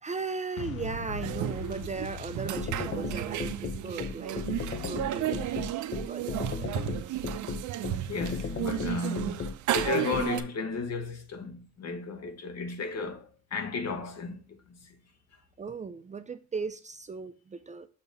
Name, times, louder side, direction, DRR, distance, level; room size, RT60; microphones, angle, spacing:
voice 1, 0.0-4.4 4.7-5.5 6.0-6.8 15.6-17.9, right 4 dB, 25° right, 0.4 m, -37 dB
Boom, 0.6-6.4, left 4 dB, 80° left, 0.8 m, -42 dB
sound 1, 1.2-10.4, right 12 dB, 75° right, 0.6 m, -33 dB
sound 2, 2.6-10.2, left 5 dB, 40° left, 0.7 m, -34 dB
voice 2, 8.1-14.4 14.7-14.9, left 4 dB, 60° left, 1.3 m, -34 dB
7.0 x 2.9 x 5.2 m
cardioid pair, 90°, 30 cm